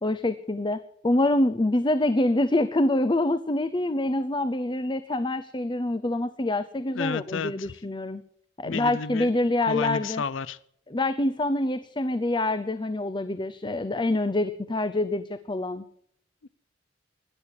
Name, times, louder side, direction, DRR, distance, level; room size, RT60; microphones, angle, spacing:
voice 1, 0.0-8.2 8.6-10.2 10.9-15.8, left 1 dB, 25° left, 12 dB, 0.7 m, -26 dB
voice 2, 6.9-7.7 8.6-9.3 9.7-10.6 16.4-16.5, left 5 dB, 85° left, 19 dB, 0.6 m, -32 dB
18.0 x 11.5 x 6.6 m, 0.66 s
head